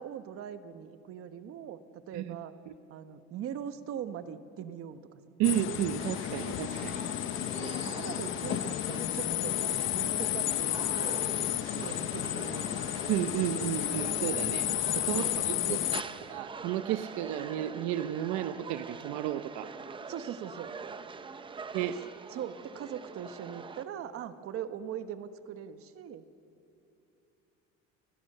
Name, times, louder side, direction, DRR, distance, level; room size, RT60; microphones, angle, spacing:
voice 1, 0.0-2.5 2.9-5.0 7.3-9.6 9.9-12.7 14.9-16.0 20.1-20.7 21.8-22.0 22.3-26.2, right 9 dB, 50° right, 11 dB, 1.2 m, -41 dB
sound 1, 5.4-16.0, left 13 dB, 40° left, 0.7 m, -32 dB
voice 2, 5.4-7.0 13.1-16.0 16.3-19.7 21.7-22.0, right 13 dB, 75° right, 11 dB, 0.8 m, -32 dB
sound 2, 6.0-23.8, right 5 dB, 15° right, 0.6 m, -44 dB
30.0 x 20.5 x 6.7 m, 2.9 s
cardioid pair, 165°, 30 cm